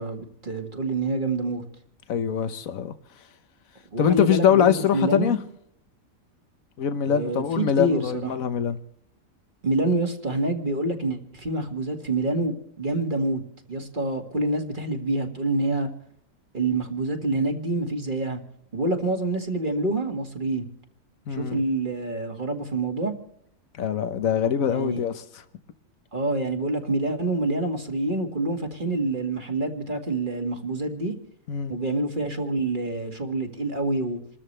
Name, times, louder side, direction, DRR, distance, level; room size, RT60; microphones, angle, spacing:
voice 1, 0.0-1.6 3.9-5.3 7.0-8.3 9.6-13.4 13.7-15.9 16.5-18.4 18.7-20.7 21.3-23.1 24.7-25.0 26.1-31.1 31.7-34.2, right 2 dB, 35° right, 2.0 m, -27 dB
voice 2, 2.1-2.9 4.0-5.4 6.8-8.8 21.3-21.6 23.8-25.4 31.5-31.7, left 8 dB, 85° left, 1.4 m, -23 dB
28.0 x 13.5 x 3.3 m
omnidirectional pair, 1.4 m